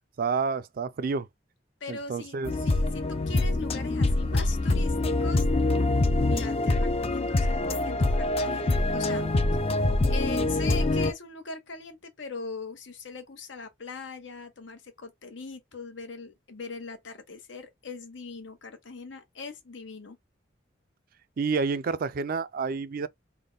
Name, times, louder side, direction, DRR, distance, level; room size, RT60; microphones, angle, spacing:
voice 1, 0.2-1.3 1.9-2.5 21.4-23.1, right 4 dB, 50° right, 0.4 m, -29 dB
voice 2, 1.8-2.4 2.6-5.4 6.2-9.3 10.1-20.2, left 4 dB, 80° left, 1.0 m, -40 dB
sound 1, 2.4-11.1, left 2 dB, 30° left, 0.4 m, -25 dB
3.5 x 2.2 x 3.8 m
head